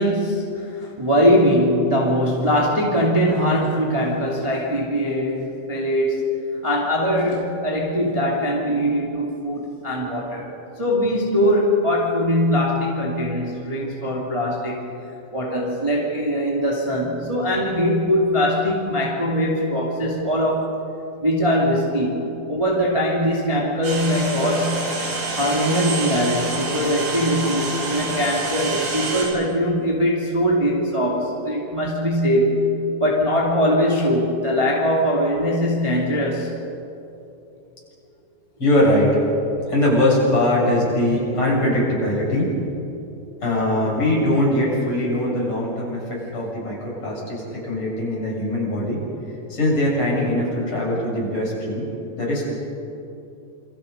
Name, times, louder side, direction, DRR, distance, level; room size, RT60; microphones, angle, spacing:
voice 1, 0.0-6.2 6.6-10.5 10.8-14.9 15.3-20.7 21.2-24.9 25.4-32.6 33.0-36.5, equal, 15° right, -3 dB, 1.2 m, -21 dB
sound 1, 23.8-29.3, right 3 dB, 90° right, 7.7 m, -27 dB
voice 2, 38.6-39.1 39.4-42.7 43.4-49.0 49.5-51.8 52.2-52.5, left 1 dB, 25° left, -4 dB, 7.4 m, -21 dB
28.0 x 26.0 x 5.4 m, 2.8 s
omnidirectional pair, 5.7 m